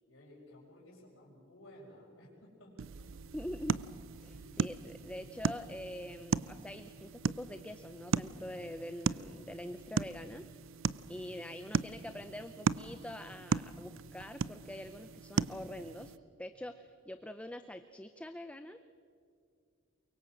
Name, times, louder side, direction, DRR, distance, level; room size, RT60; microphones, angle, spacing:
voice 1, 0.1-3.3 4.2-4.6, left 1 dB, 70° left, -9 dB, 5.5 m, -56 dB
sound 1, 2.8-16.2, right 4 dB, 70° right, 0.5 m, -37 dB
voice 2, 3.3-3.8 4.2-10.5 11.1-16.1 16.4-18.8, left 1 dB, 5° left, 10 dB, 0.5 m, -44 dB
23.5 x 23.0 x 7.5 m, 2.4 s
head